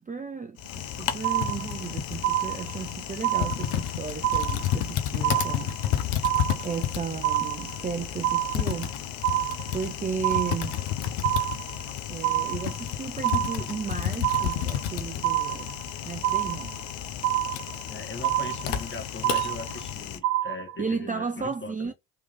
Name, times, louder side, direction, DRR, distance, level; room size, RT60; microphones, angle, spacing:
voice 1, 0.0-5.7 6.6-8.9 9.7-10.8 12.1-15.7 16.0-16.7 20.8-21.9, right 5 dB, 20° right, 0.5 m, -34 dB
Typing, 0.6-20.2, left 10 dB, 75° left, 0.8 m, -32 dB
sound 1, 1.2-1.9 2.2-2.9 3.2-3.9 4.2-4.9 5.2-5.9 6.2-6.9 7.2-7.9 8.2-8.9 9.2-9.9 10.2-10.9 11.2-11.9 12.2-12.9 13.2-13.9 14.2-14.9 15.2-15.9 16.2-16.9 17.2-17.9 18.2-18.9 19.2-19.9 20.2-20.9, right 13 dB, 80° right, 0.6 m, -27 dB
voice 2, 17.9-21.9, left 3 dB, 25° left, 1.4 m, -39 dB
3.4 x 3.0 x 3.7 m
hypercardioid pair, 45°, 45 cm